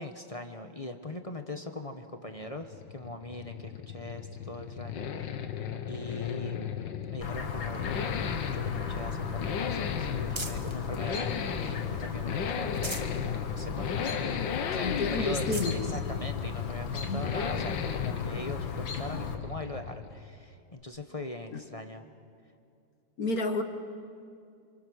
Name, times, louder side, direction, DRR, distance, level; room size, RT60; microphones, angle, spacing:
voice 1, 0.0-5.3 5.9-6.7 7.1-14.3 14.7-22.0, left 2 dB, 25° left, 6 dB, 0.8 m, -41 dB
sound 1, 2.3-20.3, left 7 dB, 75° left, 1.8 m, -35 dB
Chirp tweet, 7.2-19.3, left 5 dB, 90° left, 2.3 m, -37 dB
sound 2, 8.2-10.8 11.3-12.1 12.5-13.2 13.7-13.8 14.1-14.2 14.8-14.9 15.3-15.8 16.6-16.7 18.5-18.6, right 2 dB, 20° right, 0.9 m, -43 dB
voice 2, 14.8-16.0 17.1-17.3 21.5-21.6 23.2-23.6, left 2 dB, 50° left, 7 dB, 1.8 m, -31 dB
28.0 x 25.5 x 6.4 m, 2.4 s
omnidirectional pair, 2.1 m